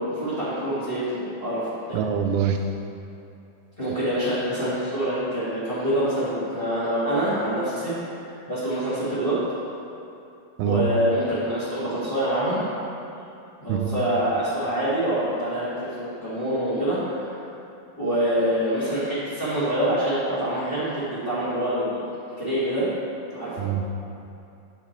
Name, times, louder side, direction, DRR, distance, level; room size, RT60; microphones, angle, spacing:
voice 1, 0.0-2.0 3.8-7.9 8.5-9.4 10.6-12.6 13.6-17.3 18.0-22.0 22.4-22.9 23.3-23.7, equal, 30° left, -13 dB, 0.9 m, -25 dB
voice 2, 1.9-2.6 10.6-10.9 13.7-13.9 23.6-23.9, right 8 dB, 80° right, 5 dB, 2.0 m, -24 dB
8.3 x 5.9 x 4.4 m, 2.7 s
omnidirectional pair, 4.0 m